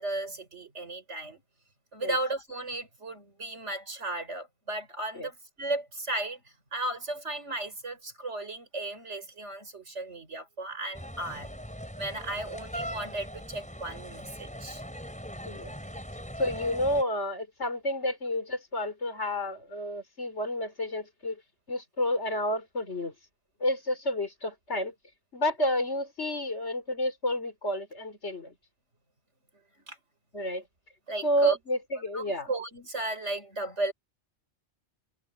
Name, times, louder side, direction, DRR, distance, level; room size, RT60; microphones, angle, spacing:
voice 1, 0.0-1.4 1.9-6.4 6.7-11.5 12.0-14.8 29.9-30.0 31.1-31.6 32.1-33.9, right 2 dB, 90° right, 4.9 m, -35 dB
sound 1, 10.9-17.0, equal, 5° left, 4.8 m, -40 dB
voice 2, 16.4-21.4 21.7-23.1 23.6-24.9 25.3-28.5 30.3-30.6 31.2-32.5, left 1 dB, 80° left, 4.6 m, -30 dB
omnidirectional pair, 1.2 m